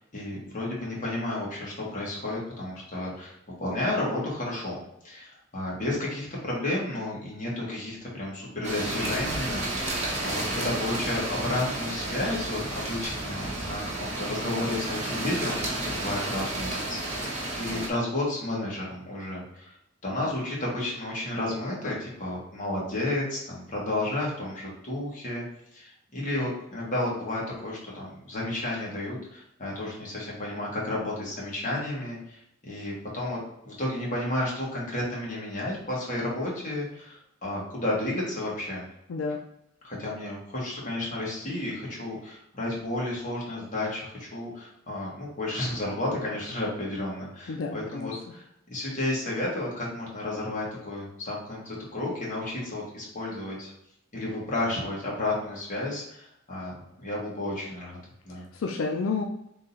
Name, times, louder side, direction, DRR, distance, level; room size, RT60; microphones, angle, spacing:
voice 1, 0.0-3.3 3.6-4.8 5.0-9.9 10.2-19.8 20.0-25.4 25.7-38.8 39.8-48.4 48.7-53.7 54.1-58.5, left 1 dB, 40° left, -5 dB, 1.5 m, -32 dB
sound 1, 8.6-17.9, right 2 dB, 35° right, 1.1 m, -32 dB
voice 2, 47.5-48.1 58.5-59.2, left 4 dB, 80° left, 2 dB, 0.4 m, -30 dB
3.8 x 2.8 x 4.0 m, 0.80 s
head